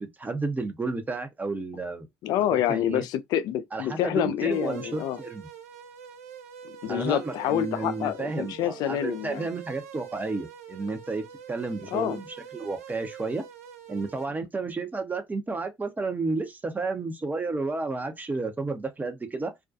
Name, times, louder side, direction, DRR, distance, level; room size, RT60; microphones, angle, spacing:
voice 1, 0.0-2.1 2.7-3.0 3.7-5.5 6.9-12.2 12.5-13.4 13.9-19.5, right 3 dB, 20° right, 0.7 m, -32 dB
voice 2, 2.2-5.2 6.6-9.5 11.9-12.2, left 11 dB, 60° left, 0.4 m, -27 dB
sound 1, 4.5-14.3, right 8 dB, 85° right, 0.4 m, -45 dB
2.4 x 2.2 x 2.5 m
hypercardioid pair, 55°, 8 cm